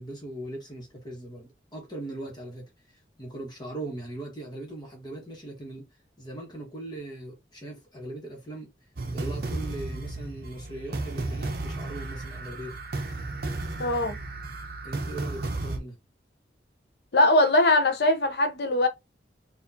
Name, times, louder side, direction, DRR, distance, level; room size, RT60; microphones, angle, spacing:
voice 1, 0.0-5.9 6.2-8.7 9.1-12.8 14.8-15.9, right 1 dB, 25° left, 1.3 m, -39 dB
sound 1, 9.0-15.8, right 2 dB, 55° right, 0.8 m, -34 dB
voice 2, 13.8-14.2 17.1-18.9, left 1 dB, 65° left, 0.6 m, -21 dB
4.3 x 2.5 x 2.6 m
head